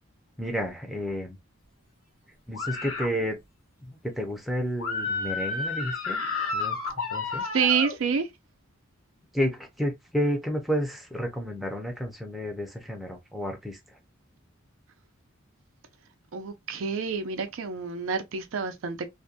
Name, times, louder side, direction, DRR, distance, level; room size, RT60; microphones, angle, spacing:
voice 1, 0.4-1.4 2.5-3.4 3.8-6.2 6.5-6.8 7.1-7.4 9.3-13.8, equal, ahead, 0.5 m, -31 dB
sound 1, 2.5-3.1 4.8-7.9, left 4 dB, 90° left, 1.0 m, -31 dB
voice 2, 7.5-8.3 16.3-19.1, right 6 dB, 70° right, 0.4 m, -28 dB
2.5 x 2.2 x 2.6 m
head